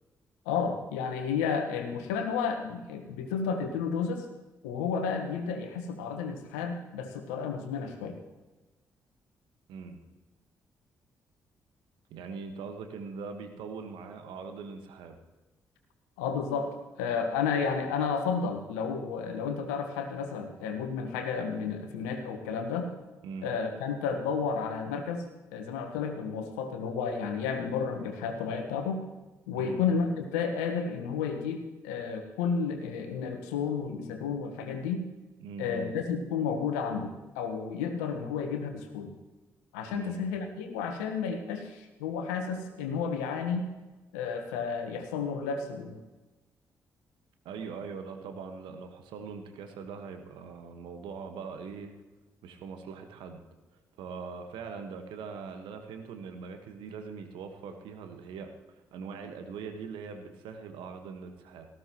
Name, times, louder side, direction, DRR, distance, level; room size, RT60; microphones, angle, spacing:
voice 1, 0.4-4.3 4.6-8.2 16.2-22.9 23.4-25.2 25.5-29.0 29.5-35.0 35.6-39.1 39.7-43.7 44.1-46.0, left 6 dB, 80° left, 6 dB, 1.4 m, -32 dB
voice 2, 9.7-10.0 12.1-15.2 23.2-23.5 29.5-29.8 35.4-36.0 39.9-40.2 47.4-51.9 52.4-53.4 54.0-61.7, right 5 dB, 70° right, 6 dB, 1.5 m, -41 dB
18.5 x 14.5 x 3.1 m, 1.1 s
hypercardioid pair, 40°, 9 cm